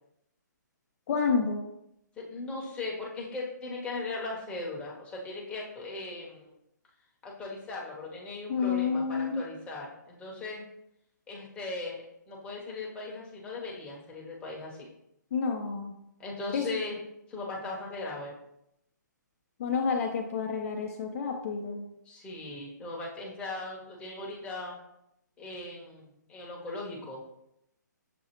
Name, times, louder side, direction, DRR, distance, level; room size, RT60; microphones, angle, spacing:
voice 1, 1.1-1.6 8.5-9.4 15.3-15.9 16.5-16.7 19.6-21.8, left 5 dB, 50° left, 2 dB, 0.6 m, -29 dB
voice 2, 2.2-6.5 7.2-10.6 11.3-14.9 16.2-17.0 17.3-18.3 22.1-24.7 25.4-27.2, left 2 dB, 10° left, -4 dB, 0.8 m, -38 dB
6.8 x 2.3 x 2.9 m, 0.81 s
hypercardioid pair, 145°, 10 cm